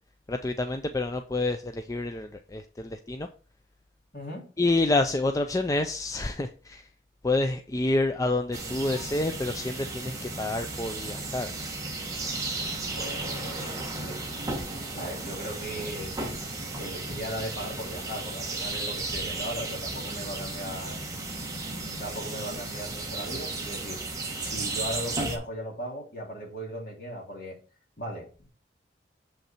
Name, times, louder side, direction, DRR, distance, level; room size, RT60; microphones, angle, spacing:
voice 1, 0.3-3.3 4.6-6.8 7.2-11.5, left 2 dB, 20° left, 0.4 m, -28 dB
voice 2, 4.1-4.5 12.9-14.2 14.9-16.1 16.8-21.0 21.9-27.6 28.0-28.5, equal, 50° left, 2.9 m, -38 dB
sound 1, 8.5-25.4, right 2 dB, 20° right, 1.3 m, -34 dB
7.1 x 5.5 x 4.3 m
head